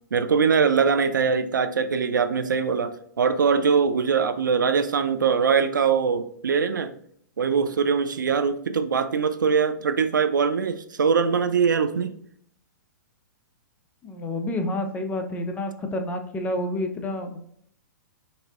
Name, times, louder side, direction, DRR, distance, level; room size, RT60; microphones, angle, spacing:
voice 1, 0.1-6.9 7.4-12.1, right 6 dB, 90° right, 9 dB, 0.4 m, -22 dB
voice 2, 14.0-17.4, left 1 dB, 15° left, 5 dB, 0.4 m, -29 dB
4.1 x 2.6 x 2.4 m, 0.67 s
hypercardioid pair, 120°, 10 cm